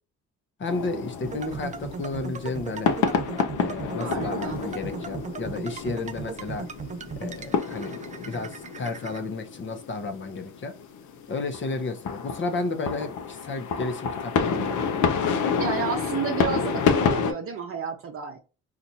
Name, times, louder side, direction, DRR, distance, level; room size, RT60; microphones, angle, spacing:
voice 1, 0.6-2.9 3.5-6.7 7.2-10.7 11.3-14.8, left 3 dB, 40° left, 0.8 m, -32 dB
sound 1, 0.7-17.3, left 6 dB, 80° left, 0.7 m, -29 dB
sound 2, 1.2-9.2, right 6 dB, 25° right, 0.4 m, -37 dB
voice 2, 4.0-4.6 15.6-18.4, right 6 dB, 45° right, 0.7 m, -31 dB
4.2 x 2.5 x 2.7 m
cardioid pair, 90°, 30 cm